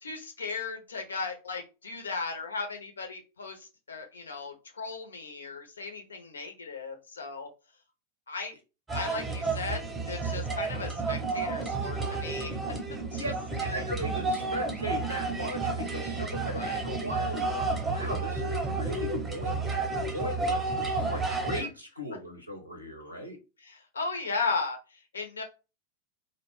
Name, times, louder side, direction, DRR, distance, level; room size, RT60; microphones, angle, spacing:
voice 1, 0.0-7.5 8.3-8.5 8.9-12.8 13.1-13.2 13.6-13.8 16.5-16.8 23.6-25.4, left 4 dB, 70° left, 4 dB, 0.6 m, -36 dB
sound 1, 8.9-21.6, right 3 dB, 10° right, 0.7 m, -31 dB
voice 2, 13.6-19.6 20.1-23.4, equal, 90° right, 3 dB, 0.7 m, -38 dB
2.4 x 2.1 x 3.3 m, 0.29 s
figure-of-eight pair, 90°, 0 cm